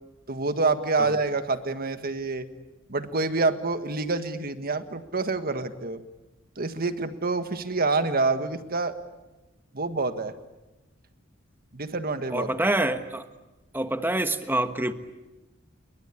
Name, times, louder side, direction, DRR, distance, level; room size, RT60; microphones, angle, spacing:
voice 1, 0.3-2.5 2.9-6.0 6.6-9.0 9.7-10.3 11.7-12.5, right 3 dB, 50° right, 10 dB, 1.7 m, -27 dB
voice 2, 12.3-13.3 13.7-14.9, right 1 dB, 10° right, 9 dB, 1.3 m, -26 dB
29.0 x 22.5 x 8.4 m, 1.0 s
head